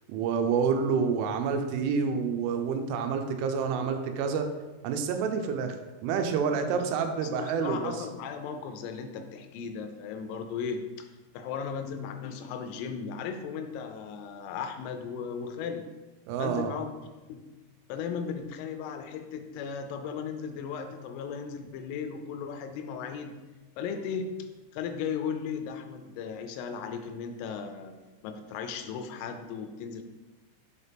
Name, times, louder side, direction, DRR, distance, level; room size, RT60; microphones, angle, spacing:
voice 1, 0.1-4.5 4.8-5.8 6.0-8.1 16.3-16.7, right 6 dB, 85° right, 6 dB, 3.2 m, -28 dB
voice 2, 7.4-11.1 11.3-15.9 16.4-16.9 17.3-17.5 17.9-23.4 23.8-24.4 24.7-28.0 28.2-30.0, left 6 dB, 85° left, 6 dB, 3.0 m, -36 dB
7.3 x 4.1 x 3.4 m, 1.2 s
omnidirectional pair, 5.6 m